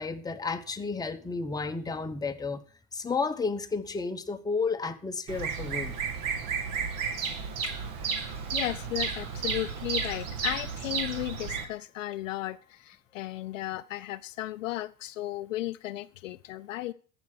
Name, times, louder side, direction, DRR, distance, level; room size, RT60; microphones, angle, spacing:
voice 1, 0.0-2.6 2.9-5.9, left 4 dB, 10° left, 0.9 m, -32 dB
Bird vocalization bird call bird song, 5.3-11.6, right 5 dB, 45° right, 2.0 m, -32 dB
voice 2, 8.5-16.9, left 15 dB, 60° left, 0.5 m, -35 dB
14.0 x 5.9 x 6.5 m
figure-of-eight pair, 80°, 44 cm